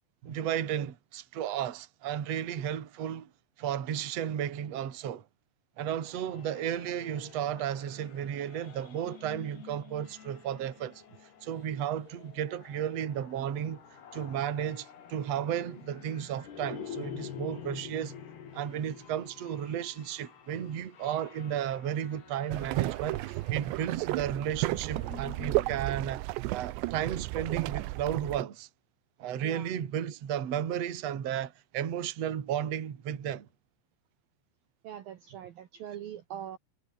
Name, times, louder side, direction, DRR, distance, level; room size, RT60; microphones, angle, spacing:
voice 1, 0.3-3.3 3.6-5.3 5.8-11.0 11.4-13.8 14.1-18.2 18.5-26.2 26.5-28.7 29.2-33.5, right 10 dB, 45° right, 2.5 m, -34 dB
sound 1, 6.0-25.9, left 8 dB, 60° left, 5.1 m, -48 dB
sound 2, 22.5-28.4, right 19 dB, 80° right, 2.7 m, -33 dB
voice 2, 34.8-36.6, right 10 dB, 60° right, 2.7 m, -42 dB
omnidirectional pair, 5.5 m